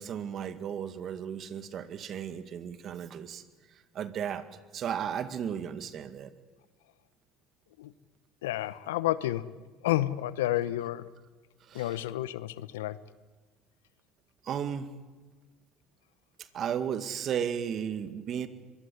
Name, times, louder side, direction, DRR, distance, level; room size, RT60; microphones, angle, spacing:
voice 1, 0.0-4.5 4.7-6.3 11.6-12.0 14.4-14.9 16.4-18.5, right 8 dB, 50° right, 10 dB, 2.0 m, -35 dB
voice 2, 8.4-9.5 9.8-11.1 11.7-13.0, left 14 dB, 85° left, 16 dB, 0.9 m, -30 dB
23.5 x 21.0 x 9.8 m, 1.3 s
hypercardioid pair, 75°, 0 cm